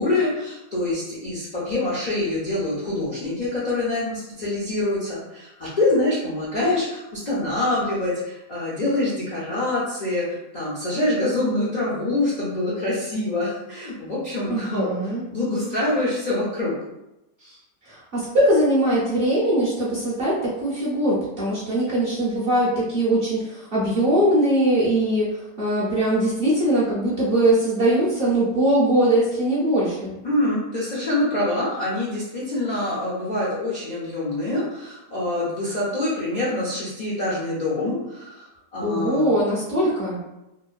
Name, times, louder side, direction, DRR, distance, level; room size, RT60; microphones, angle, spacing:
voice 1, 0.0-16.8 17.4-17.6 30.2-38.4 38.7-39.2, left 2 dB, 85° left, -8 dB, 0.3 m, -25 dB
voice 2, 14.5-15.2 17.8-30.2 38.8-40.2, right 1 dB, 50° right, -8 dB, 0.7 m, -21 dB
3.0 x 2.2 x 2.4 m, 0.93 s
omnidirectional pair, 1.7 m